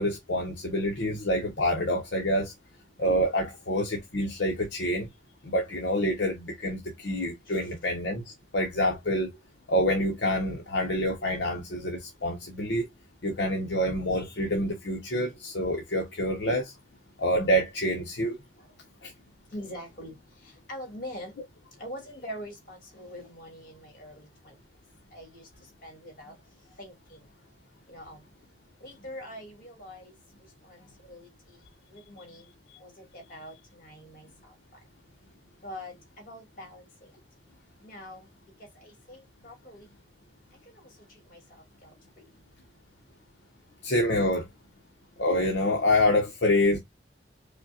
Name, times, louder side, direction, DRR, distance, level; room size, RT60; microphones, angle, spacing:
voice 1, 0.0-2.5 3.0-5.1 5.5-8.2 8.5-9.3 9.7-12.8 13.2-16.7 17.2-18.3 43.8-44.5 45.2-46.8, left 1 dB, 70° left, 0.8 m, -27 dB
voice 2, 19.5-20.2 20.4-21.3 21.8-24.6 25.1-25.5 25.8-26.4 26.8-27.2 27.9-28.2 28.8-30.1 30.6-31.6 31.9-32.5 32.8-34.5 35.6-37.1 37.8-38.3 38.6-39.9 40.7-41.0 41.3-41.9 42.2-42.3, equal, 50° left, 1.9 m, -44 dB
5.1 x 2.2 x 2.7 m
head